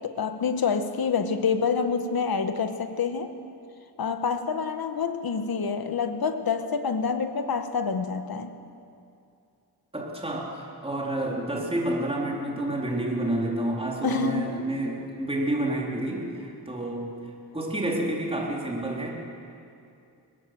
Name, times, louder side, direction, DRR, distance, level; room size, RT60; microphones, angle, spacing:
voice 1, 0.0-3.3 4.0-8.5 14.0-14.6, left 5 dB, 60° left, 8 dB, 1.6 m, -27 dB
voice 2, 9.9-17.1 17.5-19.1, right 1 dB, 15° right, -1 dB, 4.0 m, -29 dB
23.0 x 19.5 x 7.8 m, 2.5 s
cardioid pair, 90°, 41 cm